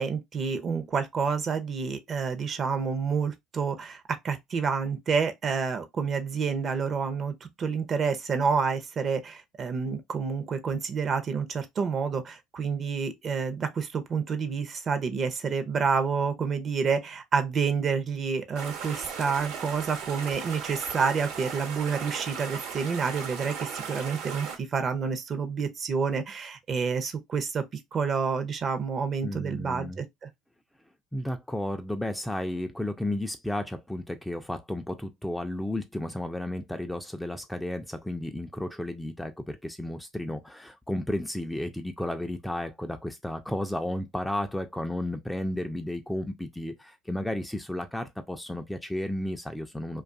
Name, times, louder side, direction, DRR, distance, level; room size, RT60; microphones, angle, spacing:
voice 1, 0.0-27.6 27.9-30.3, right 5 dB, 40° right, 0.6 m, -29 dB
sound 1, 18.5-24.6, right 7 dB, 75° right, 1.0 m, -37 dB
voice 2, 29.2-30.0 31.1-50.0, left 1 dB, 5° left, 0.4 m, -33 dB
2.5 x 2.3 x 2.5 m
hypercardioid pair, 80°, 0 cm